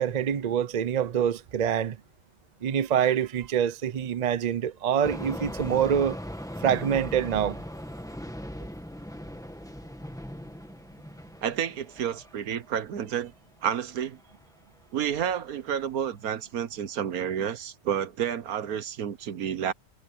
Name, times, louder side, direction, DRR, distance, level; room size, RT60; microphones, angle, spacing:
voice 1, 0.0-2.0 2.6-6.2 6.6-7.6, right 8 dB, 50° right, 0.5 m, -25 dB
sound 1, 5.0-13.6 14.1-14.5 14.8-14.9 15.5-15.6 15.9-16.0, equal, ahead, 1.4 m, -39 dB
voice 2, 11.4-13.3 13.6-14.2 14.9-19.7, right 9 dB, 70° right, 1.4 m, -30 dB
omnidirectional pair, 1.6 m